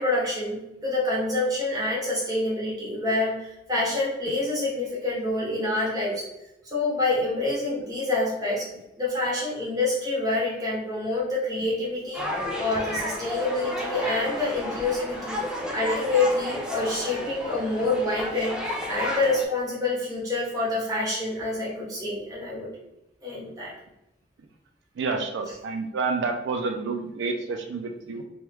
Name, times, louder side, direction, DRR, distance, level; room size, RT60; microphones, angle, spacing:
voice 1, 0.0-6.3 6.6-8.7 9.0-12.2 12.6-15.4 15.7-22.7 23.2-23.7, left 2 dB, 20° right, -6 dB, 1.0 m, -27 dB
sound 1, 12.1-19.4, left 1 dB, 5° right, 0.4 m, -32 dB
voice 2, 25.0-28.2, right 4 dB, 80° right, 4 dB, 0.3 m, -29 dB
3.0 x 2.2 x 3.3 m, 0.90 s
head